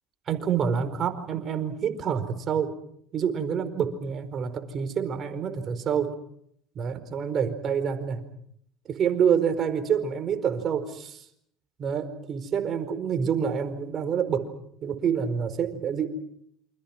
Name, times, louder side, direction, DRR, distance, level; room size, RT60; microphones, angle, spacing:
voice 1, 0.3-2.7 3.1-6.1 6.7-8.2 8.9-11.2 11.8-14.5 14.8-16.1, right 7 dB, 45° right, 9 dB, 4.7 m, -27 dB
28.5 x 26.5 x 6.2 m, 0.68 s
hypercardioid pair, 80°, 0 cm